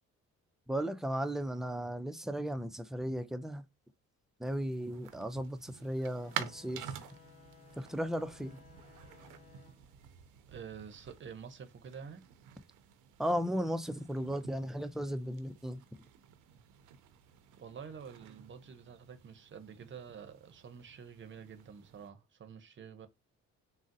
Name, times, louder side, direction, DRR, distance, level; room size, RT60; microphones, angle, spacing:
voice 1, 0.7-3.6 4.4-6.9 7.8-8.6 13.2-15.8, equal, ahead, 0.3 m, -35 dB
sound 1, 4.4-22.1, right 10 dB, 90° right, 0.5 m, -50 dB
sound 2, 6.1-11.3, left 4 dB, 45° left, 1.0 m, -59 dB
voice 2, 10.5-12.2 17.6-23.1, right 7 dB, 40° right, 0.6 m, -48 dB
3.7 x 2.0 x 2.5 m
cardioid pair, 90°, 30 cm